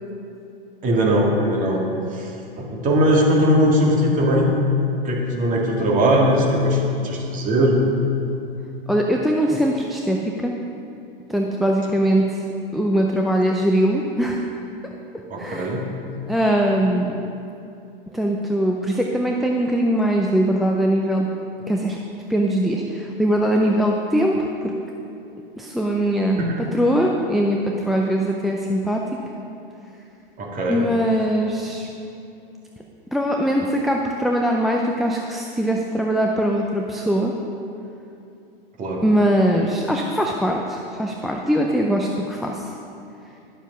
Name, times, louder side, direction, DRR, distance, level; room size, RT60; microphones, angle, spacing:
voice 1, 0.8-1.8 2.1-2.3 2.6-4.5 5.0-7.8 15.3-15.9 26.4-26.6 30.4-30.8 38.8-39.0, equal, 25° right, -1 dB, 2.0 m, -19 dB
voice 2, 8.9-10.5 11.3-12.4 12.7-14.4 15.4-15.7 16.3-17.2 18.1-21.3 21.7-22.0 22.3-24.7 25.6-26.4 26.7-29.0 30.7-31.9 33.1-37.3 39.0-42.7, equal, ahead, 0 dB, 0.4 m, -21 dB
11.5 x 7.2 x 5.5 m, 2.7 s
hypercardioid pair, 110°, 29 cm